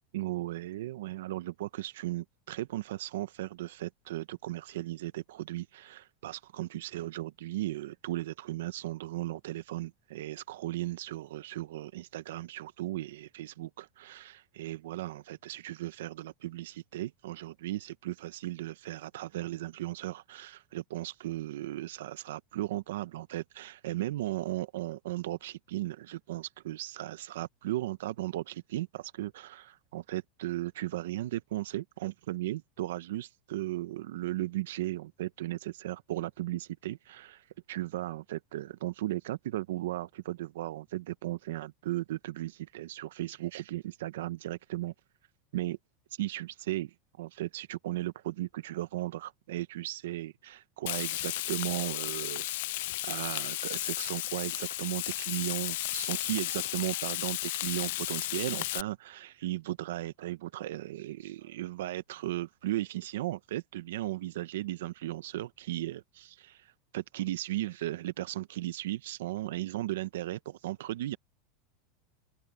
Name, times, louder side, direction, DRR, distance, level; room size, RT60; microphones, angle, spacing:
voice 1, 0.1-44.9 45.5-45.8 46.1-52.5 53.0-71.2, right 15 dB, 90° right, 0.6 m, -36 dB
Frying (food), 50.9-58.8, left 18 dB, 60° left, 0.4 m, -34 dB
supercardioid pair, 175°, 0 cm